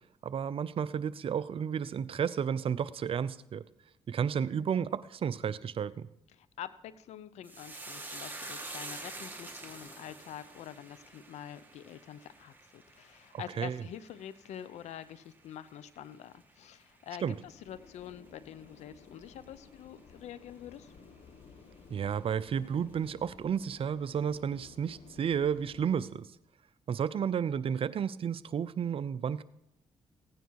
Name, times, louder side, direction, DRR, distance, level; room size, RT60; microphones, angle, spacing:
voice 1, 0.2-3.6 4.1-6.1 13.6-13.8 17.2-17.4 21.9-26.3 26.9-29.4, right 7 dB, 55° right, 16 dB, 0.6 m, -32 dB
voice 2, 6.3-20.9, left 10 dB, 80° left, 15 dB, 0.7 m, -46 dB
sound 1, 7.4-16.1 16.4-17.0 17.3-17.5, right 2 dB, 15° right, 2.1 m, -47 dB
sound 2, 17.4-26.1, left 4 dB, 60° left, 1.5 m, -56 dB
16.0 x 9.3 x 4.7 m, 0.81 s
cardioid pair, 70°, 11 cm